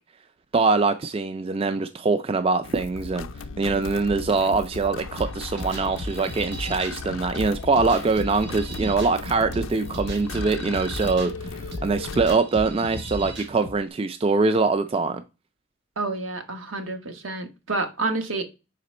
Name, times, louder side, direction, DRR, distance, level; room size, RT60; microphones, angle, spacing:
voice 1, 0.5-3.2 3.6-15.2, right 3 dB, 30° right, 0.3 m, -23 dB
sound 1, 2.6-12.4, left 4 dB, 85° left, 0.5 m, -37 dB
sound 2, 5.2-13.8, equal, 55° right, 1.3 m, -35 dB
voice 2, 16.0-18.4, right 3 dB, 80° right, 1.2 m, -29 dB
5.8 x 3.9 x 4.2 m
head